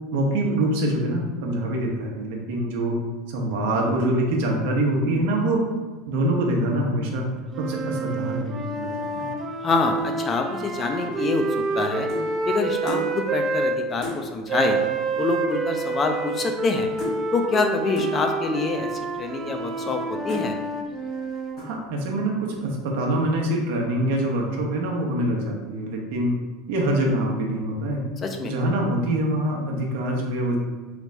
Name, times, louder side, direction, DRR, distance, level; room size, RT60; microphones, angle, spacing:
voice 1, 0.1-3.0 3.3-5.6 6.1-7.3 7.6-9.3 21.6-26.3 26.7-28.0 28.4-30.6, right 1 dB, 75° right, 0 dB, 0.7 m, -25 dB
sound 1, 7.5-13.8 14.5-21.6, right 4 dB, 35° right, 0.4 m, -28 dB
voice 2, 9.6-11.4 11.7-12.1 12.5-14.8 15.2-16.9 17.3-20.6 28.2-28.5, left 4 dB, 35° left, 4 dB, 0.4 m, -26 dB
sound 2, 11.2-12.3 12.9-13.1 13.5-13.6 14.0-14.2 15.1-15.2 15.4-15.8 16.0-16.7 17.0-17.2 18.0-18.2 18.9-19.0 19.6-19.9 20.3-20.5 21.0-21.3 21.6-21.9, left 2 dB, 50° left, 1.5 m, -34 dB
3.3 x 2.5 x 3.1 m, 1.3 s
hypercardioid pair, 100°, 0 cm